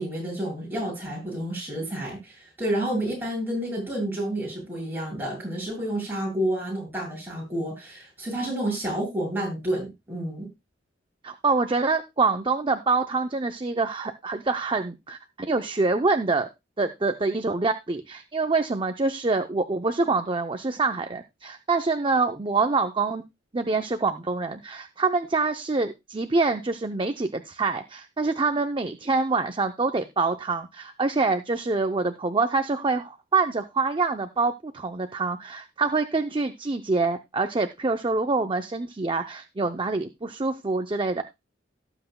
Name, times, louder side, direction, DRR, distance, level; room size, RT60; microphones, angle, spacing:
voice 1, 0.0-10.5, right 1 dB, 10° right, -3 dB, 7.9 m, -30 dB
voice 2, 11.2-16.5 16.8-23.3 23.5-41.2, right 3 dB, 25° right, 8 dB, 0.6 m, -26 dB
17.5 x 7.9 x 2.2 m, 0.23 s
head